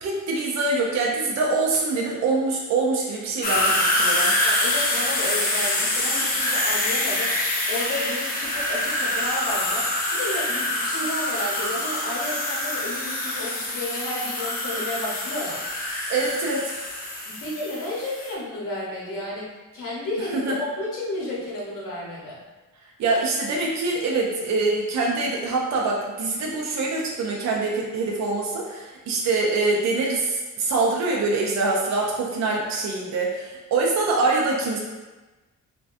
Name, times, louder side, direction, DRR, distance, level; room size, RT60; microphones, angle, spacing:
voice 1, 0.0-4.3 16.1-16.7 20.3-20.6 23.0-34.8, right 3 dB, 55° right, -2 dB, 0.5 m, -24 dB
sound 1, 3.4-18.3, left 1 dB, 30° left, 0.4 m, -25 dB
voice 2, 4.4-7.3 7.7-15.6 17.2-22.4, left 1 dB, 70° left, -5 dB, 1.0 m, -32 dB
3.4 x 2.2 x 2.5 m, 1.2 s
wide cardioid pair, 160°, 32 cm